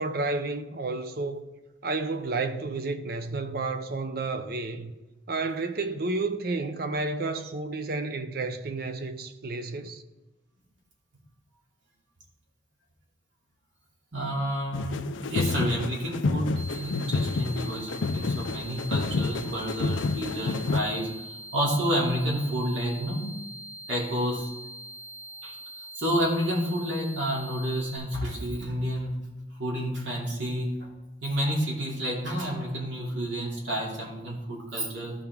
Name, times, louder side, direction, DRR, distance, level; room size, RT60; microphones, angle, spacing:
voice 1, 0.0-1.4 1.8-4.9 5.3-10.0, right 3 dB, 55° right, 0.6 m, -31 dB
voice 2, 14.1-23.2 23.9-24.5 25.4-25.5 26.0-29.1 29.6-30.9 31.2-35.1, equal, 75° right, 2.8 m, -30 dB
sound 1, 14.7-20.8, left 4 dB, 85° left, 0.5 m, -29 dB
sound 2, 16.6-28.0, right 1 dB, 30° right, 3.3 m, -43 dB
14.0 x 5.8 x 3.6 m
head